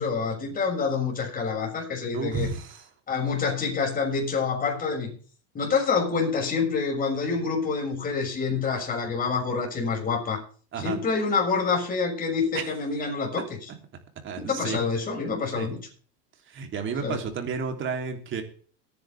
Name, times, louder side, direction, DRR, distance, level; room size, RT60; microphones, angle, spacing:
voice 1, 0.0-2.5 3.1-5.1 5.5-10.4 10.7-13.7 14.4-15.8 17.0-17.2, left 5 dB, 25° left, 0 dB, 6.7 m, -27 dB
voice 2, 2.1-2.9 10.7-11.0 13.3-13.4 14.2-14.8 15.5-15.7 16.5-18.4, right 5 dB, 35° right, 5 dB, 3.3 m, -31 dB
22.5 x 10.5 x 3.5 m, 0.43 s
supercardioid pair, 125°, 34 cm